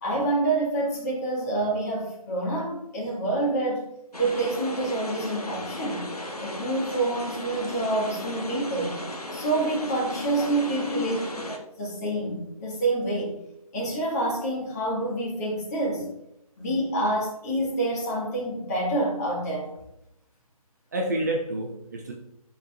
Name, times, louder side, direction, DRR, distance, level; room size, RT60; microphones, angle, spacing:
voice 1, 0.0-3.8 4.2-6.1 6.4-9.0 9.3-11.2 11.8-13.3 13.7-16.1 16.6-19.7, right 2 dB, 25° left, -3 dB, 1.7 m, -27 dB
sound 1, 4.1-11.6, left 1 dB, 85° left, 1.3 m, -36 dB
voice 2, 10.9-11.4 20.9-22.1, right 1 dB, 30° right, 1 dB, 0.6 m, -29 dB
11.5 x 4.2 x 2.4 m, 0.82 s
figure-of-eight pair, 150°, 19 cm